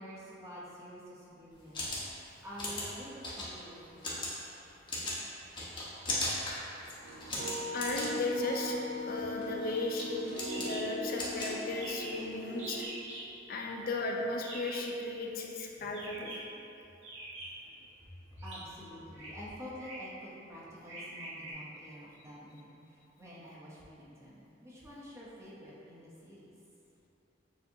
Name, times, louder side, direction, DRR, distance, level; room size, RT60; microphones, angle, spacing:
voice 1, 0.0-1.8 2.4-4.3 17.5-26.5, equal, 15° right, -8 dB, 0.7 m, -48 dB
sound 1, 1.5-12.2, left 1 dB, 25° left, 0.8 m, -39 dB
sound 2, 7.0-12.9, left 1 dB, 55° right, 0.6 m, -39 dB
voice 2, 7.7-10.3 10.5-12.9 13.5-16.4, left 2 dB, 50° left, 0 dB, 0.4 m, -36 dB
sound 3, 10.5-10.8 11.1-11.2 11.4-11.5 11.8-12.2 12.6-13.3 14.4-14.9 15.9-16.5 17.0-17.7 18.4-18.6 19.1-19.3 19.8-20.1 20.9-21.5, right 2 dB, 75° right, 1.3 m, -44 dB
6.8 x 2.7 x 2.7 m, 2.9 s
head